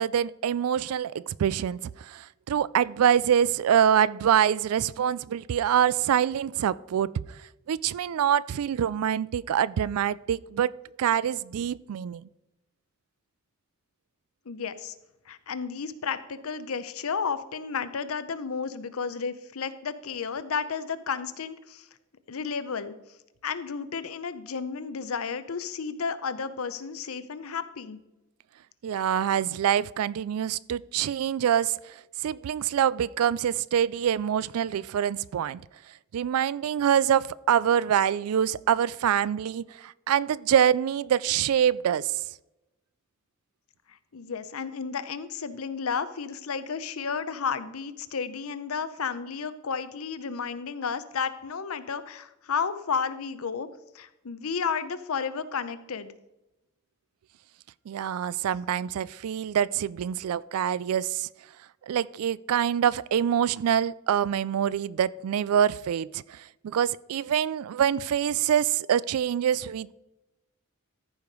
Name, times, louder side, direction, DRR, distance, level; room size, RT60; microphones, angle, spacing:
voice 1, 0.0-7.1 7.7-10.7 11.0-12.3 28.8-35.6 36.1-42.2 57.9-61.3 61.9-70.0, right 9 dB, 80° right, 0.3 m, -25 dB
voice 2, 14.5-14.9 15.3-21.9 22.3-22.9 23.4-28.0 44.1-53.7 53.9-56.1, left 6 dB, 75° left, 0.7 m, -32 dB
14.0 x 4.9 x 5.2 m
head